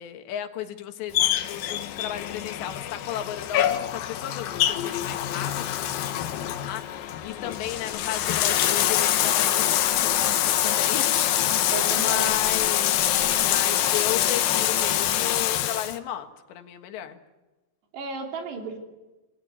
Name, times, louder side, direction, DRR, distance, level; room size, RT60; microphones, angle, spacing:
voice 1, 0.0-17.2, left 11 dB, 90° left, 7 dB, 3.8 m, -35 dB
Bathtub (filling or washing), 1.1-16.0, left 11 dB, 70° left, 2.5 m, -25 dB
voice 2, 11.7-12.4 17.9-18.8, right 4 dB, 75° right, 3 dB, 5.2 m, -33 dB
27.5 x 20.0 x 9.4 m, 1.1 s
omnidirectional pair, 4.9 m